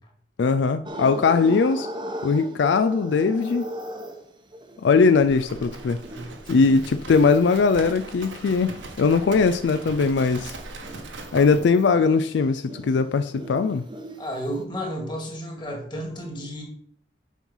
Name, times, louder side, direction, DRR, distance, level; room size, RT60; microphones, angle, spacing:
voice 1, 0.4-1.9 2.2-3.7 4.8-6.0 6.5-10.5 11.3-13.8, left 4 dB, 65° left, 11 dB, 0.3 m, -20 dB
sound 1, 0.9-9.1 9.5-14.6, right 1 dB, 25° right, 0.8 m, -39 dB
Livestock farm animals working animals, 5.1-11.6, right 2 dB, 80° right, 1.3 m, -40 dB
voice 2, 6.1-6.8 14.2-16.6, equal, 25° left, 0 dB, 2.0 m, -32 dB
7.3 x 5.5 x 5.4 m, 0.66 s
head